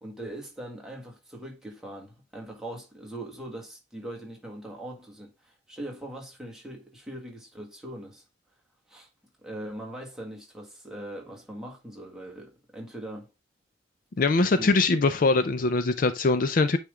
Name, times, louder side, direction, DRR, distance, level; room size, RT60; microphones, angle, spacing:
voice 1, 0.0-8.2 8.9-9.1 9.4-13.3 14.6-14.7, right 1 dB, 5° right, 1.7 m, -41 dB
voice 2, 14.2-16.8, left 3 dB, 45° left, 0.5 m, -22 dB
9.0 x 3.5 x 3.6 m
head